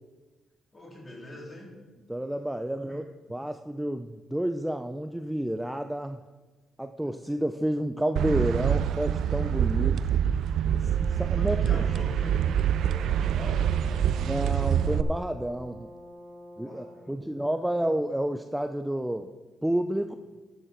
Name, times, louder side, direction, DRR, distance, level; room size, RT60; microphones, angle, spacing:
voice 1, 0.7-1.7 2.8-3.1 11.4-12.6 12.8-14.1 16.6-17.2 20.1-20.2, left 1 dB, 25° left, -2 dB, 3.4 m, -43 dB
voice 2, 2.1-6.2 6.8-10.0 10.8-11.6 14.2-15.9 16.6-19.3 19.6-20.1, right 1 dB, 5° right, 8 dB, 0.5 m, -30 dB
sound 1, 8.2-15.0, right 9 dB, 75° right, 0.4 m, -25 dB
Brass instrument, 10.8-17.0, equal, 30° right, 3.8 m, -47 dB
13.5 x 7.6 x 4.4 m, 1.3 s
cardioid pair, 90°, 0 cm